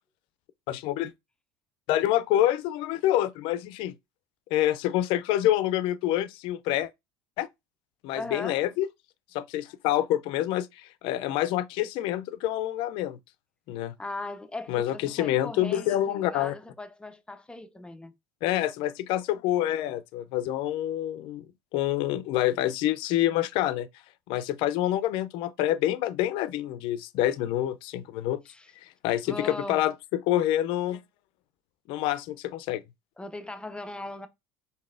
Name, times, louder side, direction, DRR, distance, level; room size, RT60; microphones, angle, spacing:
voice 1, 0.7-1.1 1.9-3.9 4.5-6.9 7.4-7.5 8.0-8.9 9.3-13.2 13.7-13.9 14.7-16.5 18.4-21.4 21.7-23.9 24.3-28.4 29.0-31.0 31.9-32.8, left 13 dB, 65° left, 0.5 m, -27 dB
voice 2, 8.1-8.6 14.0-18.1 28.5-28.7 29.3-29.8 33.2-34.3, left 2 dB, 10° left, 0.6 m, -38 dB
3.9 x 3.8 x 2.5 m
supercardioid pair, 95°, 10 cm